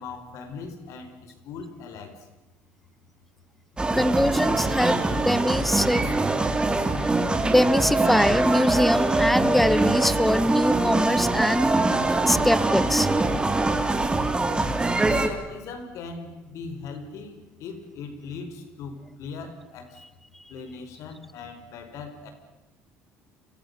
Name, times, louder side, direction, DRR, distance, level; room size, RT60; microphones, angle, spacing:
voice 1, 0.0-2.1 15.0-20.0 20.5-22.3, left 4 dB, 70° left, 8 dB, 4.8 m, -39 dB
sound 1, 3.8-15.3, right 2 dB, 15° right, 3.2 m, -23 dB
voice 2, 3.9-6.0 7.0-11.7 12.2-13.1, left 1 dB, 5° left, 15 dB, 1.2 m, -23 dB
29.0 x 24.0 x 6.9 m, 1.1 s
supercardioid pair, 85°, 6 cm